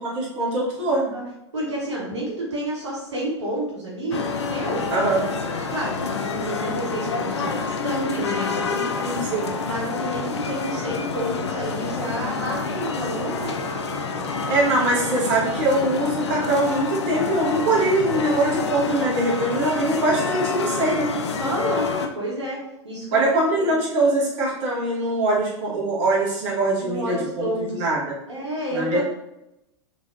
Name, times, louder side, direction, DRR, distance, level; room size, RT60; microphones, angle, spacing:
voice 1, 0.0-1.0 4.9-5.2 9.0-9.6 14.5-21.1 23.1-28.1 28.7-29.0, right 2 dB, 40° right, -5 dB, 1.1 m, -22 dB
voice 2, 0.9-1.2 1.5-5.1 5.7-9.0 9.6-13.5 21.4-23.2 23.6-23.7 26.8-27.9 28.3-29.0, right 1 dB, 70° right, -4 dB, 1.1 m, -30 dB
sound 1, 4.1-22.1, left 4 dB, 70° left, 0.4 m, -28 dB
3.3 x 3.0 x 2.6 m, 0.88 s
figure-of-eight pair, 95°, 15 cm